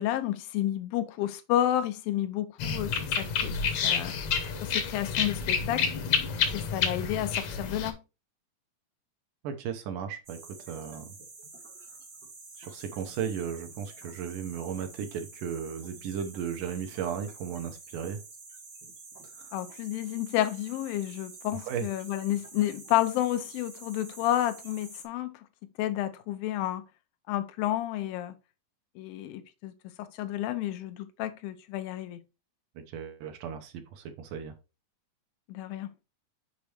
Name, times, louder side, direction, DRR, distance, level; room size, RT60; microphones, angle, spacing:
voice 1, 0.0-4.1 4.6-5.9 6.5-8.0 19.5-25.5 25.8-26.8 27.3-28.3 29.0-29.7 30.0-32.2 35.5-35.9, left 13 dB, 85° left, 2.5 m, -31 dB
sound 1, 2.6-7.9, left 6 dB, 65° left, 1.8 m, -29 dB
voice 2, 9.4-11.1 12.6-18.2 19.2-19.5 21.5-21.9 32.8-34.5, right 8 dB, 75° right, 2.1 m, -36 dB
sound 2, 10.2-25.1, right 4 dB, 55° right, 0.9 m, -48 dB
6.9 x 5.2 x 3.2 m
omnidirectional pair, 4.1 m